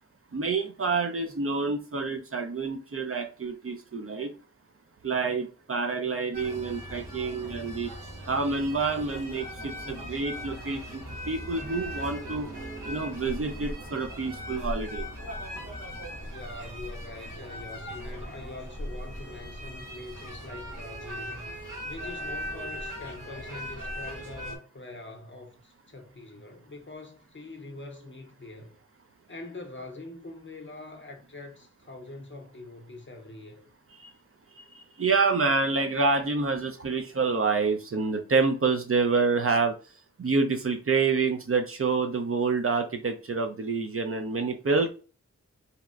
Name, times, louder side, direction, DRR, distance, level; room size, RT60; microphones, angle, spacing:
voice 1, 0.3-4.3 5.0-7.9 8.3-12.5 12.9-15.1 34.0-34.1 34.6-39.7 40.2-44.9, right 4 dB, 45° right, 0.5 m, -27 dB
sound 1, 6.3-24.6, equal, 85° right, 0.8 m, -39 dB
voice 2, 16.2-21.5 21.8-28.8 29.3-33.7, left 2 dB, 40° left, 0.7 m, -44 dB
2.8 x 2.0 x 2.3 m
wide cardioid pair, 45°, 31 cm